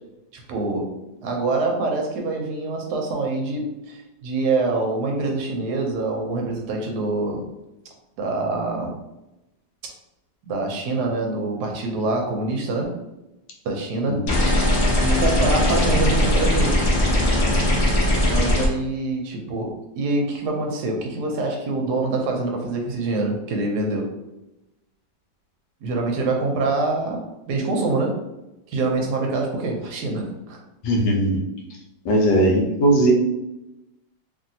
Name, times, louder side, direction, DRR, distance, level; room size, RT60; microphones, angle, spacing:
voice 1, 0.3-0.9 1.2-7.4 8.2-8.9 10.5-12.9 13.6-14.2 15.0-16.7 18.3-24.1 25.8-28.1 28.7-30.6, right 3 dB, 70° right, 1 dB, 1.1 m, -25 dB
sound 1, 14.3-18.7, left 1 dB, 65° left, 0.6 m, -19 dB
voice 2, 30.8-31.3 32.0-33.1, right 1 dB, 80° left, 1 dB, 1.3 m, -18 dB
3.0 x 2.6 x 2.6 m, 0.94 s
omnidirectional pair, 1.9 m